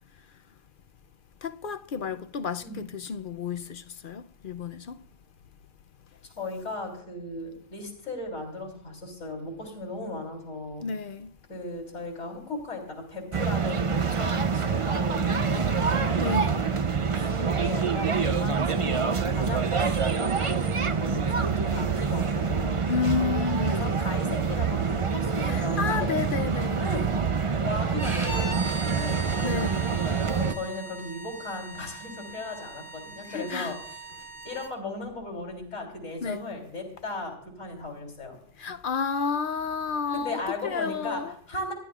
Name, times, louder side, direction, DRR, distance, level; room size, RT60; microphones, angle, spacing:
voice 1, 1.4-5.0 10.8-11.3 16.2-16.7 22.9-24.0 25.4-26.8 29.4-29.9 33.3-33.7 36.2-36.4 38.6-41.3, left 6 dB, 55° left, 0.7 m, -31 dB
voice 2, 6.4-10.8 11.5-16.1 17.2-22.9 23.7-26.2 26.8-27.1 27.6-29.4 30.3-34.0 34.4-38.4 40.1-41.7, left 2 dB, 85° left, 3.6 m, -36 dB
sound 1, 13.3-30.5, right 5 dB, 35° right, 0.6 m, -26 dB
Bowed string instrument, 28.0-34.7, right 2 dB, 55° right, 3.4 m, -39 dB
28.5 x 11.0 x 2.4 m
omnidirectional pair, 1.2 m